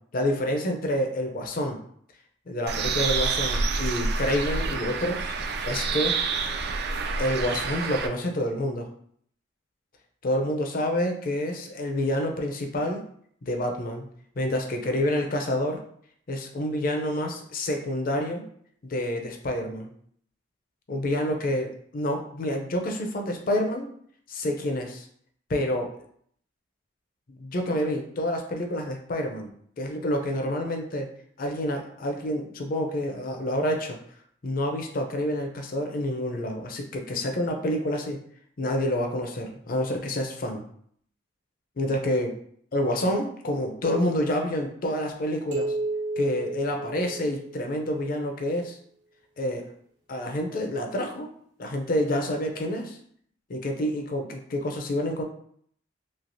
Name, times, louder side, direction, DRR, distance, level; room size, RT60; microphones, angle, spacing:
voice 1, 0.1-1.8 2.5-5.3 5.6-6.2 7.2-8.9 10.2-13.0 13.4-14.1 14.4-15.8 16.3-18.4 18.9-19.9 20.9-23.9 24.3-25.1 25.5-25.9 27.3-29.5 29.8-31.1 31.4-34.0 34.4-38.2 38.6-40.6 41.8-42.3 42.7-45.7 46.2-48.8 49.4-49.7 50.1-51.3 51.6-53.0 53.5-55.2, left 1 dB, 50° left, 3 dB, 0.5 m, -28 dB
Bird, 2.7-8.1, right 4 dB, 60° right, 0.3 m, -28 dB
sound 1, 45.5-47.9, right 2 dB, 80° right, 1.1 m, -32 dB
3.2 x 2.8 x 2.6 m, 0.64 s
head